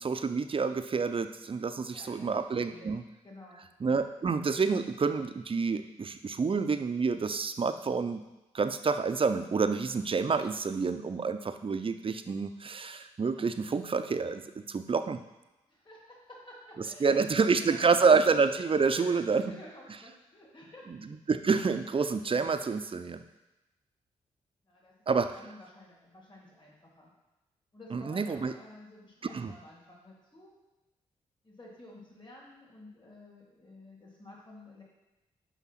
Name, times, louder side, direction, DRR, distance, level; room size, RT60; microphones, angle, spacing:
voice 1, 0.0-3.0 3.8-8.2 8.5-15.2 17.0-19.5 20.9-21.0 21.3-23.2 25.1-25.4 27.9-28.5 29.3-29.5, right 5 dB, 40° right, 9 dB, 0.6 m, -28 dB
voice 2, 1.9-3.7 15.7-18.1 18.8-20.9 24.7-27.1 27.7-30.5 31.4-34.8, left 1 dB, 35° left, -4 dB, 3.0 m, -52 dB
6.1 x 5.2 x 5.9 m, 1.0 s
supercardioid pair, 45°, 15 cm